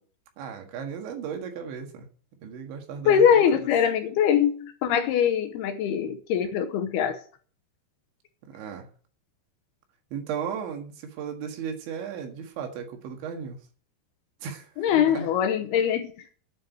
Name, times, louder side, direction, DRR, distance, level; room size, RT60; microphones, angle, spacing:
voice 1, 0.4-2.1 2.4-3.7 8.5-8.9 10.1-13.6 14.4-15.3, right 7 dB, 85° right, 4.2 m, -36 dB
voice 2, 3.1-7.2 14.8-16.1, left 8 dB, 75° left, 2.6 m, -22 dB
9.3 x 7.9 x 9.4 m
omnidirectional pair, 5.1 m